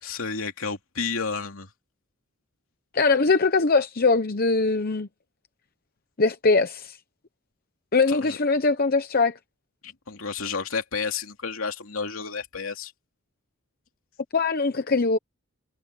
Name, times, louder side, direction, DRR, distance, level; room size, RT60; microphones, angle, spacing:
voice 1, 0.0-1.7 8.1-8.4 9.8-12.9, left 5 dB, 70° left, 2.9 m, -31 dB
voice 2, 2.9-5.1 6.2-7.0 7.9-9.4 14.3-15.2, left 3 dB, 45° left, 0.9 m, -21 dB
head